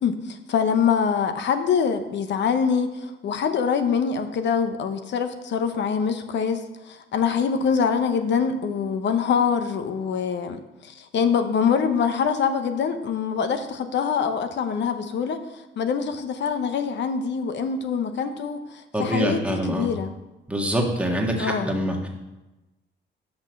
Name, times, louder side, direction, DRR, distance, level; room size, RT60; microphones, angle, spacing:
voice 1, 0.0-20.1 21.4-21.7, left 6 dB, 65° left, 9 dB, 0.8 m, -24 dB
voice 2, 18.9-19.9 20.5-22.1, equal, 5° right, 1 dB, 1.7 m, -25 dB
6.2 x 6.0 x 6.4 m, 1.1 s
cardioid pair, 90°, 20 cm